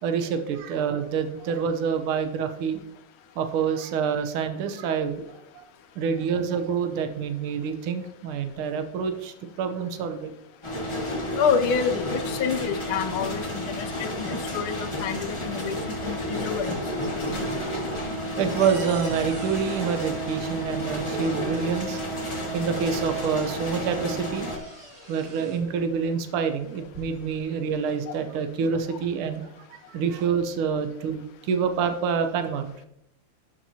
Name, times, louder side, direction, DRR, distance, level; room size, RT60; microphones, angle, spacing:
voice 1, 0.0-2.8 3.4-5.4 6.0-10.3 18.4-22.0 22.5-24.5 25.1-29.5 29.9-32.7, right 6 dB, 75° right, 7 dB, 1.6 m, -27 dB
sound 1, 10.6-24.6, equal, 15° left, 1.1 m, -31 dB
voice 2, 11.4-16.8 28.1-28.2, left 6 dB, 75° left, 9 dB, 1.4 m, -28 dB
sound 2, 17.3-21.1 22.2-22.3 22.7-23.7 24.0-25.7 26.6-27.4, right 1 dB, 25° right, 2.5 m, -45 dB
12.0 x 5.8 x 2.8 m, 0.78 s
omnidirectional pair, 2.4 m